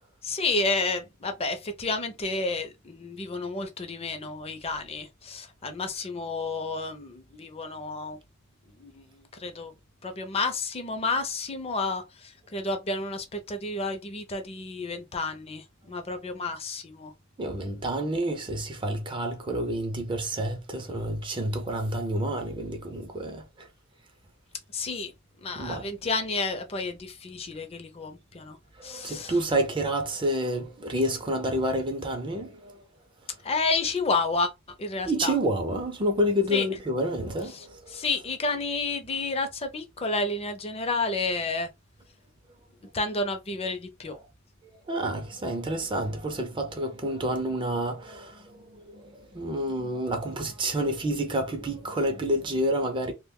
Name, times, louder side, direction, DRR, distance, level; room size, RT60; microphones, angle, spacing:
voice 1, 0.2-8.2 8.8-9.7 10.0-17.1 24.7-25.1 25.4-28.6 28.8-29.3 33.4-34.5 34.8-35.3 36.5-36.6 37.5-37.6 37.9-41.7 42.9-44.2, left 3 dB, 30° left, 0.5 m, -30 dB
voice 2, 17.4-23.7 25.5-25.9 28.7-32.8 35.1-38.0 44.9-53.1, right 1 dB, 25° right, 0.5 m, -29 dB
2.3 x 2.1 x 3.6 m
head